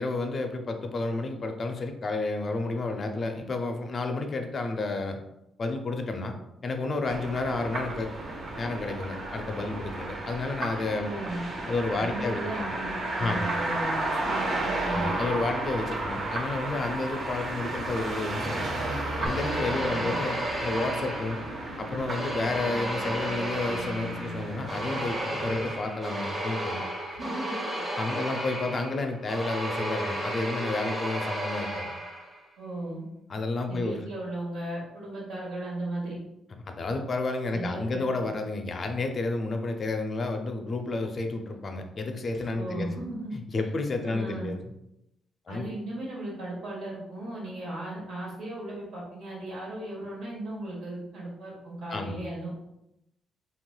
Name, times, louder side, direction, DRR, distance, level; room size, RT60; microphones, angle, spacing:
voice 1, 0.0-5.2 5.6-6.3 6.6-8.1 8.6-11.1 11.7-12.7 13.2-13.6 14.9-18.8 19.2-21.4 21.8-26.8 27.9-31.9 33.3-34.0 36.7-42.9 43.3-44.6 45.5-45.7 51.9-52.2, left 3 dB, 40° left, 5 dB, 0.4 m, -31 dB
sound 1, 7.1-25.8, right 2 dB, 55° right, 0.6 m, -33 dB
voice 2, 11.0-11.4 11.9-15.1 19.8-20.1 27.1-27.6 32.6-33.0 33.7-36.2 37.5-38.0 42.5-43.3 43.6-43.7 44.0-44.5 45.5-52.5, right 1 dB, 80° right, -5 dB, 1.3 m, -36 dB
sound 2, 19.3-21.7 22.1-32.4, right 1 dB, 30° right, 1.0 m, -33 dB
3.0 x 2.9 x 2.2 m, 0.86 s
cardioid pair, 90°, 0 cm